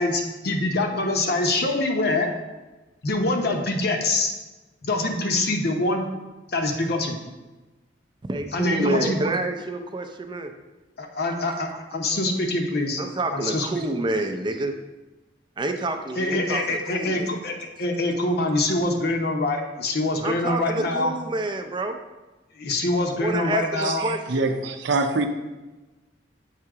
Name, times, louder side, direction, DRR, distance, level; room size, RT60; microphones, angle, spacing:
voice 1, 0.0-2.3 3.0-4.3 4.8-6.0 6.5-7.2 8.5-9.2 11.0-13.0 13.3-13.7 16.2-21.1 22.5-24.1, left 2 dB, 60° left, 3 dB, 0.7 m, -24 dB
voice 2, 8.3-10.5 11.3-11.6 13.0-14.7 15.6-17.4 20.2-22.0 23.1-24.4, right 2 dB, 25° right, 6 dB, 0.4 m, -28 dB
voice 3, 23.8-25.3, right 3 dB, 80° right, 6 dB, 0.6 m, -25 dB
7.4 x 2.8 x 4.7 m, 1.1 s
head